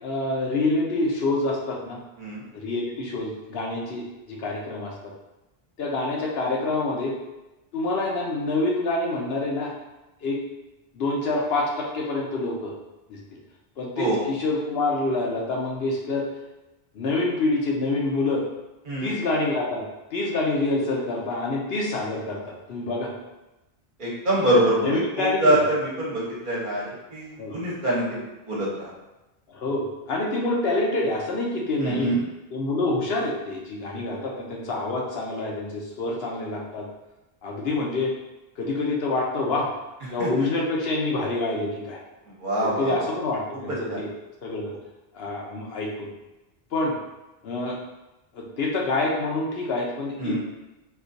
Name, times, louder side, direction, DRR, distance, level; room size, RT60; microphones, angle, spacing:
voice 1, 0.0-2.0 2.5-5.1 5.8-7.1 7.7-9.7 10.2-10.4 10.9-12.7 13.1-13.2 13.8-16.2 16.9-18.4 19.0-19.8 20.1-23.1 24.8-25.6 27.4-27.6 29.5-32.1 32.5-36.8 37.4-38.1 38.6-39.7 40.1-42.0 42.6-44.1 44.4-44.7 45.1-46.1 46.7-46.9 47.4-47.8 48.3-50.4, left 2 dB, 75° left, -2 dB, 0.9 m, -27 dB
voice 2, 24.0-28.9 31.8-32.2 40.2-40.5 42.3-43.1 43.7-44.0 44.7-44.8 50.2-50.4, right 1 dB, 55° right, -5 dB, 1.0 m, -25 dB
4.3 x 2.3 x 2.6 m, 1.0 s
omnidirectional pair, 1.1 m